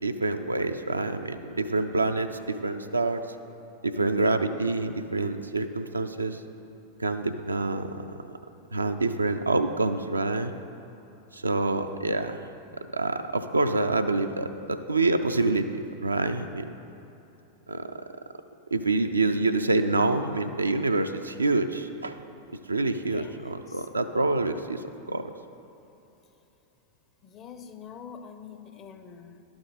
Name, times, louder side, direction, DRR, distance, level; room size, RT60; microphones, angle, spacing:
voice 1, 0.0-3.2 3.8-6.4 7.0-8.4 8.7-10.5 11.3-12.4 12.9-16.7 17.7-17.9 18.7-22.2 22.7-24.8 25.1-25.3, right 2 dB, 80° right, 8 dB, 0.4 m, -27 dB
voice 2, 23.0-23.9 27.2-29.4, left 7 dB, 30° left, 8 dB, 0.6 m, -45 dB
11.5 x 6.0 x 4.1 m, 2.9 s
figure-of-eight pair, 90°, 0 cm